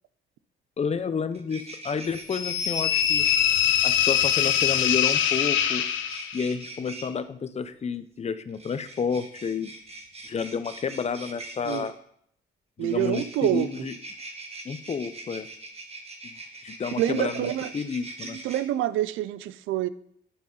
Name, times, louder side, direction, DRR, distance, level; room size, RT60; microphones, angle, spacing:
voice 1, 0.8-3.2 3.8-5.8 6.3-9.7 10.2-11.9 12.8-13.9 14.6-15.5 16.2-16.4 16.6-18.4, left 6 dB, 35° left, 12 dB, 0.6 m, -30 dB
sound 1, 1.0-1.1 1.3-3.4 4.4-7.1 8.5-11.9 12.8-18.6, right 2 dB, 30° right, 1.5 m, -42 dB
sound 2, 2.3-6.5, left 9 dB, 80° left, 0.8 m, -23 dB
voice 2, 12.8-13.7 17.0-17.7 18.2-19.9, right 13 dB, 85° right, 16 dB, 0.4 m, -27 dB
10.0 x 5.5 x 3.8 m, 0.68 s
cardioid pair, 90°, 20 cm